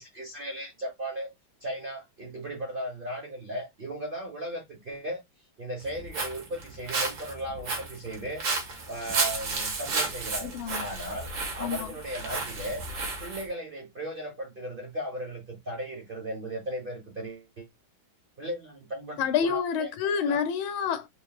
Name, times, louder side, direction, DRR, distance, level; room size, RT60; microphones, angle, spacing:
voice 1, 0.0-1.3 1.6-5.2 5.6-8.4 8.9-12.8 13.2-17.7 18.4-19.9 20.2-20.4, right 1 dB, 35° right, 1.0 m, -36 dB
Walk footsteps, 5.8-13.5, right 3 dB, 70° right, 2.1 m, -32 dB
voice 2, 10.4-10.9 11.6-11.9 19.2-21.1, left 7 dB, 90° left, 1.4 m, -28 dB
4.5 x 3.3 x 2.4 m
omnidirectional pair, 2.2 m